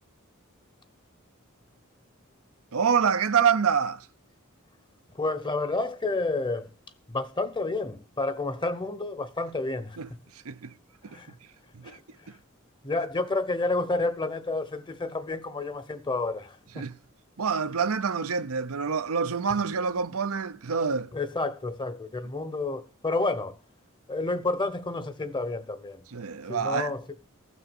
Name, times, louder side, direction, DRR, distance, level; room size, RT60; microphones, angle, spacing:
voice 1, 2.7-4.1 10.0-10.1 10.4-10.7 11.0-11.2 11.7-12.0 16.8-17.0 17.4-21.1 26.1-26.9, right 6 dB, 85° right, 0.7 m, -26 dB
voice 2, 5.1-6.7 7.1-10.2 11.1-11.4 11.8-12.4 12.8-16.9 21.1-23.6 24.1-26.0 26.5-27.0, left 2 dB, 20° left, 1.0 m, -30 dB
15.0 x 6.3 x 7.2 m
head